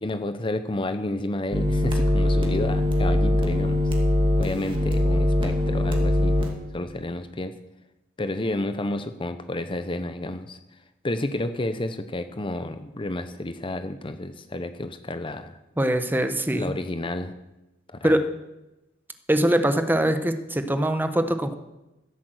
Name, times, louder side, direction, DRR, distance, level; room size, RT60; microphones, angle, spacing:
voice 1, 0.0-3.8 4.4-6.4 6.7-7.6 8.2-10.6 11.0-15.6 16.5-17.3 17.9-18.2, left 1 dB, 25° left, 10 dB, 0.7 m, -30 dB
sound 1, 1.5-6.5, left 1 dB, 30° right, 2.4 m, -22 dB
voice 2, 15.8-16.7 18.0-18.2 19.3-21.6, right 1 dB, 10° right, 8 dB, 1.1 m, -22 dB
15.5 x 8.3 x 7.9 m, 0.98 s
head